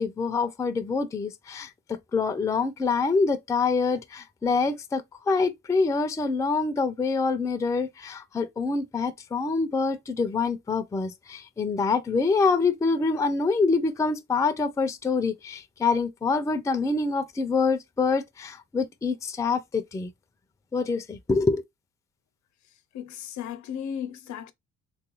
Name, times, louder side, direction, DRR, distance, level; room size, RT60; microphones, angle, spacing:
voice 1, 0.0-20.1 20.7-21.6, left 4 dB, 10° left, 0.3 m, -26 dB
voice 2, 22.9-24.5, left 8 dB, 65° left, 0.6 m, -35 dB
3.3 x 2.3 x 2.9 m
cardioid pair, 90°, 30 cm